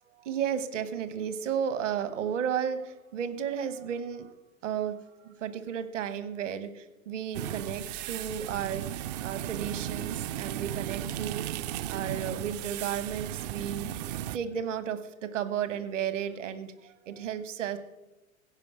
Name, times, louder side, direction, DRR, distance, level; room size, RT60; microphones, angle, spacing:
voice 1, 0.2-4.3 4.6-5.0 5.2-13.9 14.3-17.8, right 8 dB, 60° right, 11 dB, 1.3 m, -33 dB
sound 1, 7.3-14.4, right 12 dB, 35° right, 0.4 m, -35 dB
15.5 x 5.5 x 8.3 m, 1.0 s
figure-of-eight pair, 90°, 41 cm